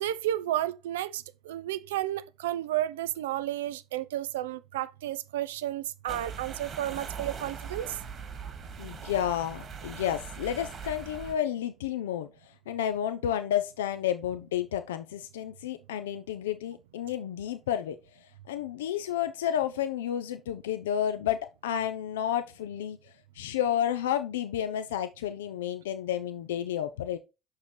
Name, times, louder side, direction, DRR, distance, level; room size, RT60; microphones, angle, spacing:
voice 1, 0.0-7.9, right 13 dB, 80° right, 0.4 m, -32 dB
sound 1, 6.1-11.4, right 6 dB, 50° right, 2.1 m, -41 dB
voice 2, 8.8-18.0 18.5-27.2, left 10 dB, 80° left, 0.4 m, -31 dB
7.3 x 6.3 x 3.2 m
hypercardioid pair, 55°, 0 cm